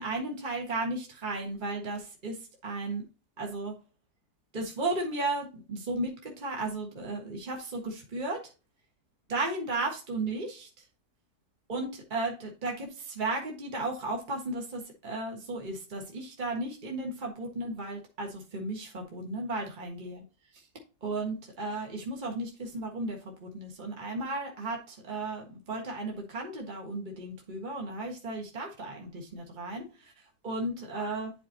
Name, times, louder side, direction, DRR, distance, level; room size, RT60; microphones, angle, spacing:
voice 1, 0.0-2.4 2.6-3.0 3.4-3.7 4.5-8.4 9.3-10.7 11.7-20.2 21.0-30.1 30.4-31.3, right 2 dB, 30° right, 1 dB, 1.6 m, -34 dB
11.0 x 4.3 x 2.8 m, 0.32 s
omnidirectional pair, 1.6 m